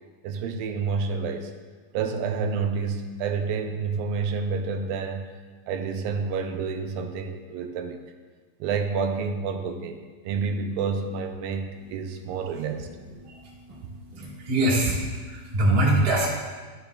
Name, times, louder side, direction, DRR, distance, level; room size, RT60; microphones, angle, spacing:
voice 1, 0.2-1.5 1.9-5.3 5.7-8.0 8.6-10.0 10.2-12.9, right 5 dB, 90° right, 5 dB, 2.3 m, -29 dB
voice 2, 14.2-15.0 15.3-16.3, right 1 dB, 45° right, -5 dB, 0.7 m, -22 dB
12.0 x 6.7 x 2.3 m, 1.4 s
omnidirectional pair, 3.9 m